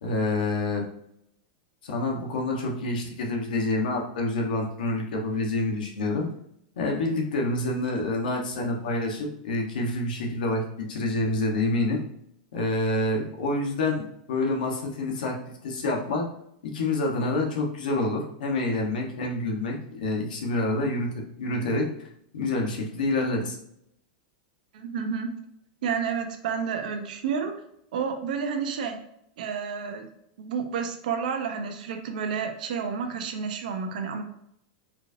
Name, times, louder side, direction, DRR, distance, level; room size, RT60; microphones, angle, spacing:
voice 1, 0.0-0.8 1.8-6.3 6.8-12.0 12.5-15.4 15.6-16.2 16.6-21.9 22.3-23.6, left 2 dB, 85° left, 0 dB, 1.1 m, -27 dB
voice 2, 24.7-25.3 25.8-27.5 27.9-29.0 29.4-30.1 30.4-34.2, right 6 dB, 70° right, 5 dB, 0.7 m, -30 dB
4.4 x 2.6 x 2.6 m, 0.74 s
supercardioid pair, 155°, 5 cm